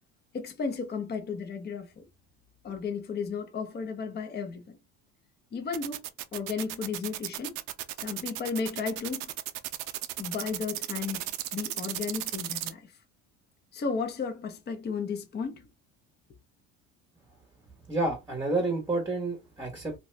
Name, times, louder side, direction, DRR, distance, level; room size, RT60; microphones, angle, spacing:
voice 1, 0.3-2.1 2.6-4.7 5.5-6.0 6.3-7.6 8.0-9.3 10.2-11.2 11.5-12.9 13.7-15.7, left 5 dB, 30° left, 0.7 m, -34 dB
sound 1, 5.7-12.7, right 15 dB, 70° right, 0.5 m, -35 dB
voice 2, 17.9-19.9, right 2 dB, 10° right, 1.0 m, -29 dB
2.7 x 2.2 x 3.1 m
supercardioid pair, 90°, 34 cm